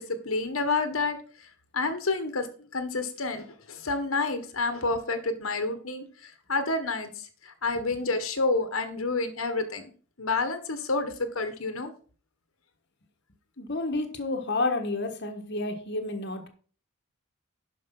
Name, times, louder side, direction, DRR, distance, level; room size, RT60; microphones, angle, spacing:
voice 1, 0.0-9.9 10.2-11.9, left 3 dB, 75° left, 8 dB, 1.4 m, -29 dB
voice 2, 13.6-16.5, left 2 dB, 55° left, 4 dB, 1.4 m, -30 dB
11.5 x 5.2 x 5.4 m, 0.41 s
head